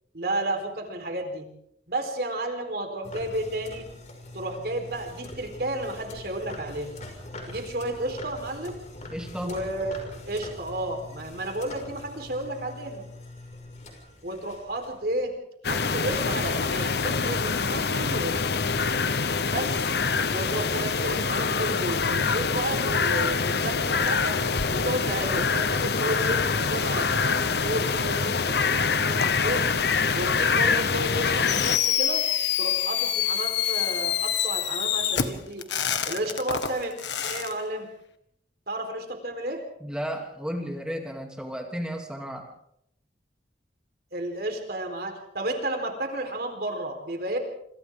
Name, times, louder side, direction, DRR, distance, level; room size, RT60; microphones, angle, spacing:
voice 1, 0.1-1.5 1.9-3.8 4.3-7.0 7.5-8.8 9.4-9.9 10.3-13.0 14.2-15.3 15.7-18.4 19.5-19.9 20.3-24.4 24.7-29.6 30.1-32.2 32.6-35.6 36.1-36.9 37.2-37.9 38.7-39.6 44.1-47.4, right 1 dB, 60° right, 4 dB, 4.2 m, -32 dB
sound 1, 3.0-15.2, left 1 dB, 40° left, 5.6 m, -43 dB
voice 2, 9.1-9.6 39.8-42.5, equal, 5° right, 1 dB, 2.9 m, -33 dB
sound 2, 15.6-31.8, left 5 dB, 65° left, 0.9 m, -25 dB
Fireworks, 31.5-37.5, left 10 dB, 80° left, 1.7 m, -26 dB
27.0 x 26.5 x 3.8 m, 0.74 s
head